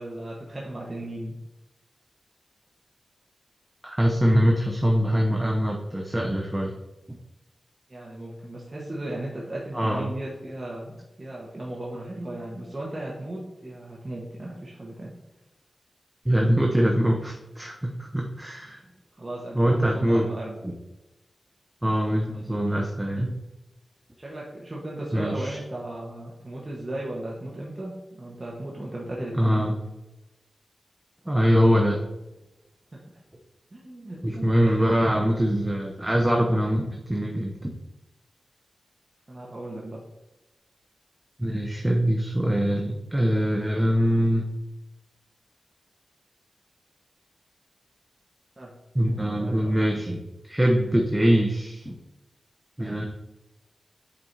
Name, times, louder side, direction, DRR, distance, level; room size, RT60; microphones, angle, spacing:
voice 1, 0.0-1.3 7.9-15.1 18.8-19.7 19.9-20.6 24.2-29.7 33.7-35.1 39.3-40.0 48.6-48.7 49.2-49.8, right 1 dB, 30° right, -4 dB, 1.2 m, -36 dB
voice 2, 3.8-6.8 9.7-10.1 16.2-18.8 19.5-20.3 20.6-20.7 21.8-23.3 25.1-25.6 29.4-29.7 31.3-32.0 34.2-37.7 41.4-44.5 48.9-50.2 50.5-52.0 52.8-53.0, equal, 10° right, 0 dB, 0.7 m, -23 dB
8.5 x 4.5 x 2.7 m, 0.97 s
wide cardioid pair, 80°, 0 cm